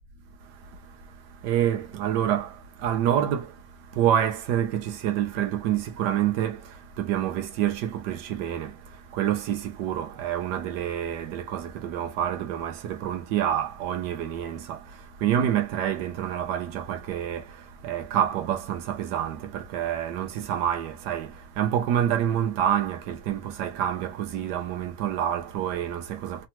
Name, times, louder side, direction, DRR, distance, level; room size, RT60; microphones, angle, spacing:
voice 1, 1.4-3.5 3.9-26.5, right 10 dB, 70° right, 1.1 m, -27 dB
3.4 x 2.0 x 2.8 m
omnidirectional pair, 2.2 m